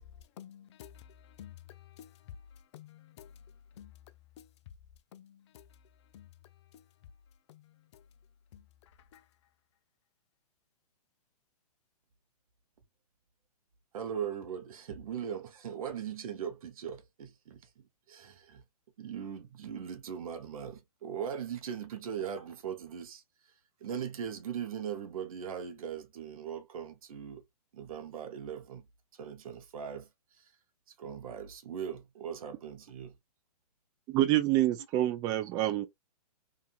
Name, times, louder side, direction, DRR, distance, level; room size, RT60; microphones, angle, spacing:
voice 1, 0.4-0.9 1.4-1.5 2.0-2.1 2.7-3.3 3.8-3.9 4.4-4.5 5.1-5.6 6.1-6.3 7.5-7.7 8.5-8.6 9.1-9.2, left 10 dB, 45° left, 0.4 m, -50 dB
voice 2, 13.9-17.6 18.1-18.6 19.0-23.2 23.8-27.4 27.7-28.8 29.1-30.1 30.4-30.5 31.0-33.2 35.0-35.1, right 8 dB, 60° right, 0.7 m, -39 dB
voice 3, 34.1-35.9, right 14 dB, 20° right, 0.3 m, -27 dB
2.8 x 2.5 x 2.2 m
hypercardioid pair, 125°, 20 cm